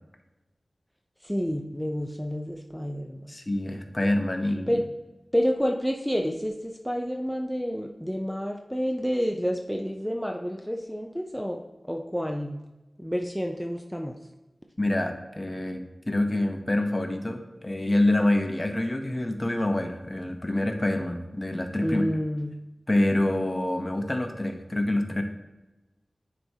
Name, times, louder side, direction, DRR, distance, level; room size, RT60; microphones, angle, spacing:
voice 1, 1.2-3.3 4.7-4.8 5.3-11.6 11.9-12.6 13.0-14.1 21.8-22.6, equal, ahead, 2 dB, 0.6 m, -29 dB
voice 2, 3.3-4.8 14.8-22.2 22.9-25.2, left 1 dB, 30° left, 4 dB, 0.9 m, -26 dB
10.0 x 4.5 x 2.8 m, 1.1 s
wide cardioid pair, 60°, 0 cm